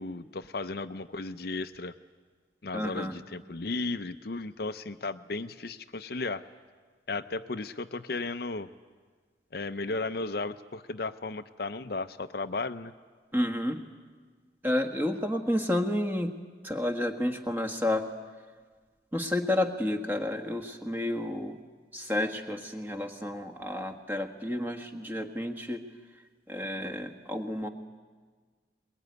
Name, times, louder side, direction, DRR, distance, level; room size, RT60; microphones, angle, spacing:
voice 1, 0.0-1.9 2.6-6.4 7.1-8.7 9.5-12.9, left 3 dB, 55° left, 10 dB, 0.6 m, -35 dB
voice 2, 2.7-3.1 13.3-13.8 14.6-16.3 16.6-18.1 19.1-21.6 21.9-25.8 26.5-27.7, left 1 dB, 10° right, 4 dB, 1.4 m, -30 dB
22.0 x 21.0 x 9.5 m, 1.5 s
head